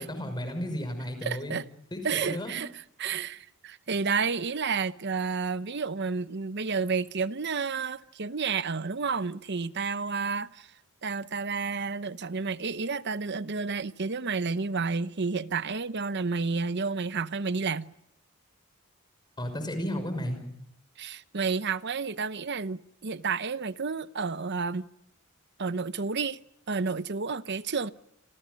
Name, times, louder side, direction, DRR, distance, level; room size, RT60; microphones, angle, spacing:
voice 1, 0.0-1.6 1.9-2.6 19.4-20.4, equal, 20° left, 5.8 m, -33 dB
voice 2, 1.2-1.7 2.0-2.7 3.0-10.7 11.0-17.9 21.0-24.8 25.6-26.4 26.7-27.9, right 5 dB, 55° right, 0.9 m, -30 dB
29.5 x 27.0 x 5.3 m
head